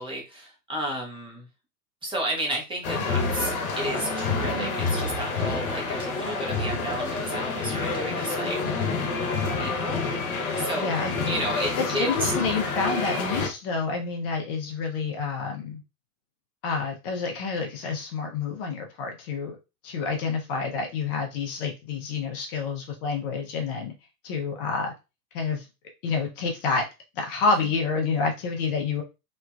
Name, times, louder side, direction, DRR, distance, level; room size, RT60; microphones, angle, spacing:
voice 1, 0.0-1.5 2.0-8.8 9.6-10.0 10.6-11.0 11.3-12.3, right 1 dB, 10° right, -2 dB, 0.6 m, -32 dB
sound 1, 2.8-13.5, left 4 dB, 60° left, 1.0 m, -28 dB
voice 2, 10.8-11.1 11.8-15.8 16.6-19.6 19.8-23.9 24.2-24.9 25.3-25.7 26.0-26.9 27.2-29.0, left 4 dB, 35° left, 2 dB, 0.6 m, -28 dB
3.0 x 2.2 x 2.2 m, 0.27 s
figure-of-eight pair, 95°, 49 cm